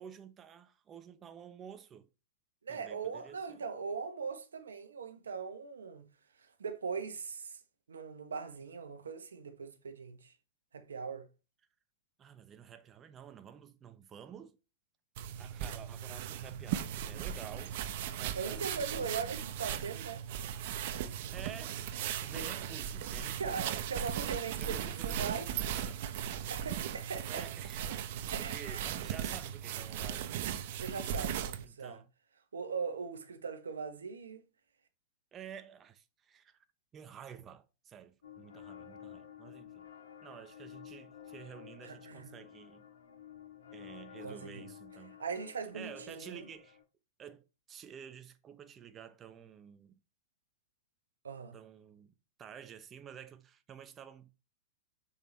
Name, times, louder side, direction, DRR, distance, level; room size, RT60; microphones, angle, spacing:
voice 1, 0.0-2.1 2.7-3.6 12.2-14.6 15.4-17.8 18.1-19.4 21.3-21.9 22.2-23.7 24.6-26.0 27.3-27.8 28.4-30.3 31.6-32.1 35.3-36.6 36.9-39.9 40.2-42.8 43.7-45.2 45.7-46.8 47.2-49.9 51.5-52.1 52.4-54.3, right 8 dB, 25° right, 1.0 m, -50 dB
voice 2, 2.6-6.1 6.6-7.6 7.9-10.3 10.7-11.3 18.4-20.2 22.3-22.5 23.4-25.5 26.5-27.5 28.3-29.0 30.8-32.0 32.5-34.4 41.8-42.3 44.2-44.6 45.2-46.4 51.2-51.6, right 5 dB, 80° right, 1.2 m, -40 dB
sound 1, 15.2-31.6, right 9 dB, 55° right, 0.9 m, -37 dB
sound 2, 38.2-46.8, left 10 dB, 80° left, 2.1 m, -52 dB
6.8 x 5.6 x 3.3 m
hypercardioid pair, 105°, 0 cm